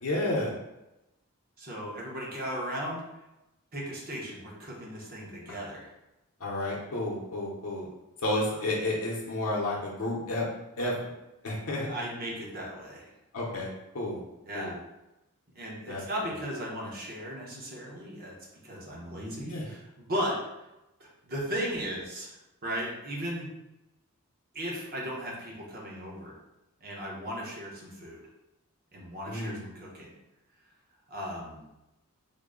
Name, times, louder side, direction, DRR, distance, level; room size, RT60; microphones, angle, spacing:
voice 1, 0.0-0.5 6.4-7.9 8.2-10.5 10.8-10.9 11.4-11.9 13.3-13.7 13.9-14.2 14.5-14.8 15.9-16.3 19.5-19.7 29.3-29.6, left 1 dB, 70° left, -4 dB, 0.7 m, -31 dB
voice 2, 1.6-3.0 3.7-5.9 11.8-13.1 14.5-14.8 15.5-18.4 18.6-20.4 21.0-23.5 24.5-26.3 26.8-28.2 28.9-30.1 31.1-31.6, equal, 45° right, -3 dB, 0.9 m, -36 dB
3.8 x 2.1 x 3.7 m, 0.95 s
head